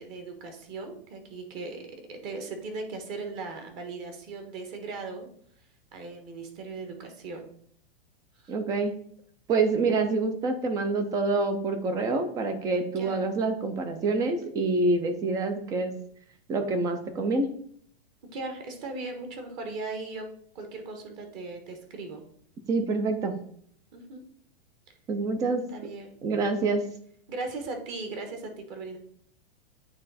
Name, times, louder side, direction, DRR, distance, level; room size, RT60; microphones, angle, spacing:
voice 1, 0.0-5.3 5.9-7.5 8.3-8.5 12.9-13.2 18.3-20.3 20.5-22.2 23.9-24.2 25.7-26.2 27.3-29.0, right 3 dB, 35° right, 5 dB, 1.3 m, -38 dB
voice 2, 8.5-8.9 9.5-16.0 16.5-17.5 22.7-23.3 25.1-25.6 26.2-26.8, right 3 dB, 10° right, 8 dB, 0.3 m, -26 dB
8.7 x 3.2 x 4.0 m, 0.63 s
supercardioid pair, 155°, 30 cm